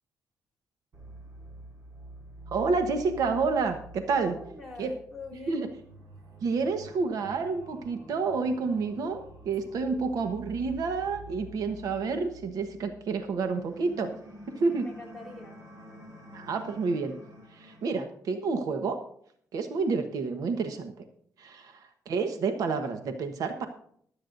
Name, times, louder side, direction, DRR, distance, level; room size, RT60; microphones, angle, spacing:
sound 1, 0.9-17.9, right 1 dB, 55° right, 4.3 m, -48 dB
voice 1, 2.5-4.3 4.8-4.9 5.5-5.7 6.4-14.1 14.6-14.8 16.3-17.1 17.5-19.0 19.5-20.9 21.4-23.7, right 4 dB, 70° right, 7 dB, 1.2 m, -29 dB
voice 2, 4.3-5.7 9.8-10.5 14.7-15.6, left 2 dB, ahead, 0 dB, 3.9 m, -45 dB
24.0 x 8.5 x 2.6 m, 0.63 s
wide cardioid pair, 155°, 6 cm